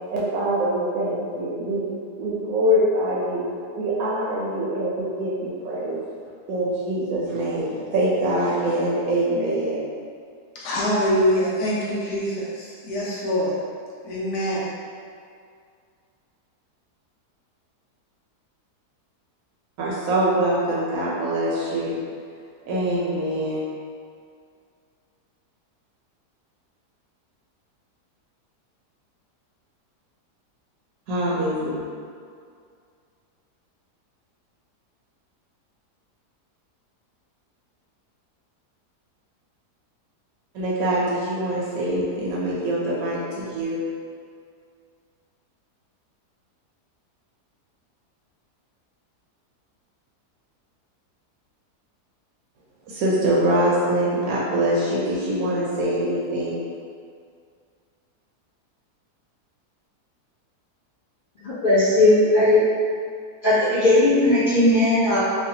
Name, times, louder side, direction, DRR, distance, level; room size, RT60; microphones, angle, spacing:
voice 1, 0.1-1.9 2.1-3.5 3.7-6.0 6.5-9.8 19.8-22.0 22.7-23.7 31.1-31.9 40.5-43.8 52.9-56.7, right 1 dB, 70° right, -6 dB, 0.9 m, -24 dB
voice 2, 10.5-13.5 14.0-14.7, equal, 80° left, -6 dB, 1.3 m, -24 dB
voice 3, 61.4-62.7 63.4-65.2, left 1 dB, 55° left, -13 dB, 0.6 m, -17 dB
3.2 x 2.0 x 2.7 m, 2.2 s
omnidirectional pair, 1.7 m